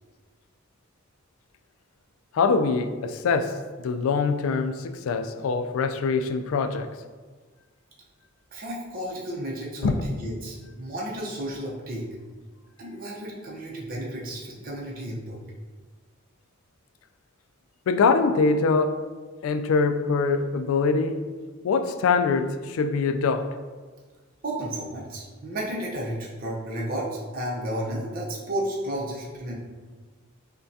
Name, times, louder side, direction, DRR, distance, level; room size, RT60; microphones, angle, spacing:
voice 1, 2.3-6.9 9.8-9.9 17.9-19.0 19.4-21.3 21.6-23.5, left 4 dB, 75° left, 8 dB, 0.3 m, -23 dB
voice 2, 8.5-12.1 12.8-15.4 24.4-29.5, right 1 dB, 45° right, -4 dB, 0.7 m, -32 dB
5.5 x 2.2 x 2.7 m, 1.4 s
head